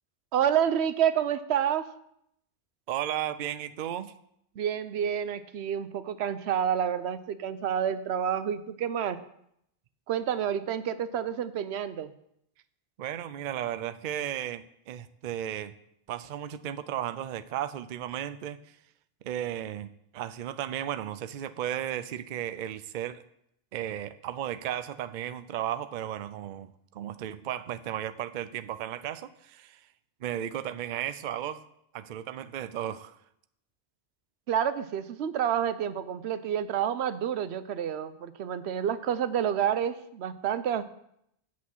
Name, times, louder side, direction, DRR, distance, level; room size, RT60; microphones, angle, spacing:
voice 1, 0.3-1.9 4.6-9.2 10.1-12.1 34.5-40.8, right 9 dB, 85° right, 13 dB, 0.9 m, -29 dB
voice 2, 2.9-4.1 13.0-15.7 16.1-18.8 19.2-23.2 23.7-29.9 30.2-31.6 31.9-33.2, right 11 dB, 55° right, 13 dB, 0.6 m, -35 dB
8.4 x 6.1 x 7.3 m, 0.75 s
omnidirectional pair, 1.1 m